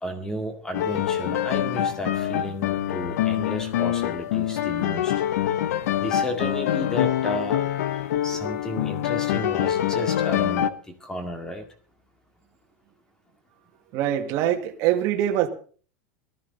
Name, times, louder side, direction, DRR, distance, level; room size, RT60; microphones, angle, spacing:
voice 1, 0.0-5.1 6.0-7.6 8.2-11.6, equal, 10° left, 2.1 m, -33 dB
sound 1, 0.7-10.7, left 11 dB, 75° left, 1.0 m, -25 dB
voice 2, 13.9-15.5, right 11 dB, 35° right, 1.9 m, -23 dB
18.5 x 14.0 x 4.0 m
supercardioid pair, 175°, 8 cm